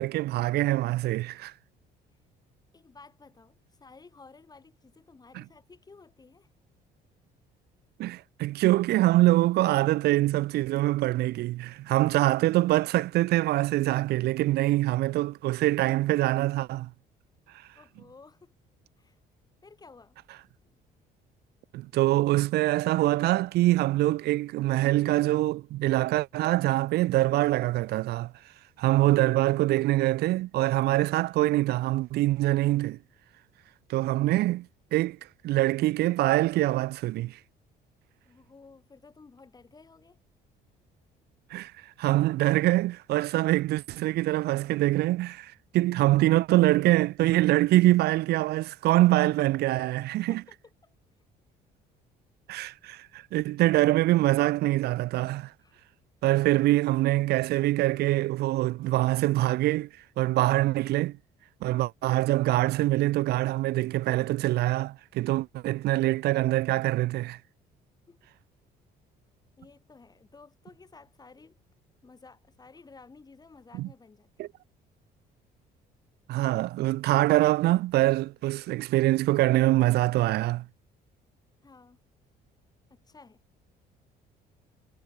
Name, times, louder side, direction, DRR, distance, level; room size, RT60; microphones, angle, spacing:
voice 1, 0.0-1.5 5.3-5.4 8.0-16.9 21.7-28.3 28.8-33.0 33.9-34.7 34.9-35.2 35.4-37.4 41.5-41.7 42.0-50.4 52.5-55.5 56.2-59.9 60.2-61.2 61.6-67.4 73.7-73.9 74.4-74.5 76.3-80.7, right 17 dB, 70° right, 0.7 m, -24 dB
voice 2, 2.7-6.5 17.8-18.5 19.0-19.2 19.6-20.2 20.6-20.8 38.3-40.2 50.3-50.9 55.6-55.8 68.1-68.2 69.6-71.6 72.0-74.5 81.6-82.0 82.9-83.4, left 4 dB, 25° left, 5.3 m, -54 dB
cardioid pair, 110°, 17 cm